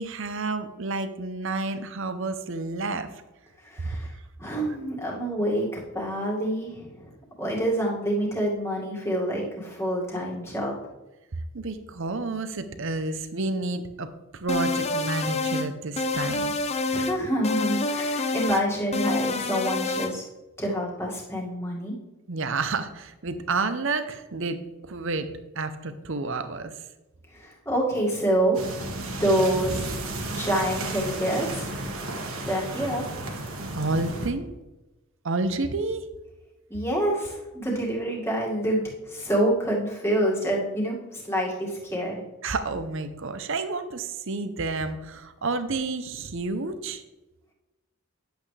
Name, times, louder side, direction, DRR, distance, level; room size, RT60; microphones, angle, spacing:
voice 1, 0.0-3.1 11.5-16.5 22.3-25.3 25.5-26.7 33.7-34.5 35.2-36.1 42.4-47.0, right 3 dB, 60° right, 10 dB, 0.7 m, -30 dB
voice 2, 3.6-4.1 4.4-7.1 7.4-10.7 16.9-20.3 20.6-22.0 27.3-28.6 29.1-29.9 30.3-31.7 32.5-33.0 36.7-42.2, right 1 dB, 10° left, -3 dB, 2.0 m, -27 dB
sound 1, 14.5-15.7 16.0-17.2 17.4-18.6 18.9-20.1, left 3 dB, 30° left, 0.6 m, -27 dB
sound 2, 28.5-34.3, right 2 dB, 75° right, 1.7 m, -33 dB
10.5 x 7.9 x 3.3 m, 1.1 s
head